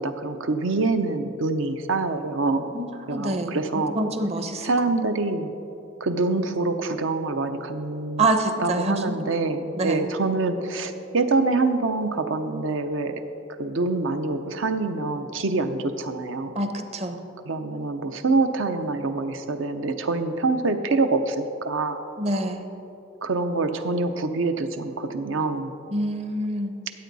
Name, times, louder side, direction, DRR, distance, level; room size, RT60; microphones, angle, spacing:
voice 1, 0.0-2.7 3.1-4.0 4.6-5.5 6.0-8.3 8.6-13.2 13.6-16.5 17.5-22.0 23.2-25.7, right 3 dB, 70° right, 8 dB, 0.7 m, -25 dB
voice 2, 2.7-4.7 8.2-9.2 9.7-10.0 16.5-17.2 22.2-22.6 25.9-26.7, right 2 dB, 30° right, 7 dB, 0.7 m, -26 dB
14.0 x 8.3 x 4.1 m, 2.8 s
head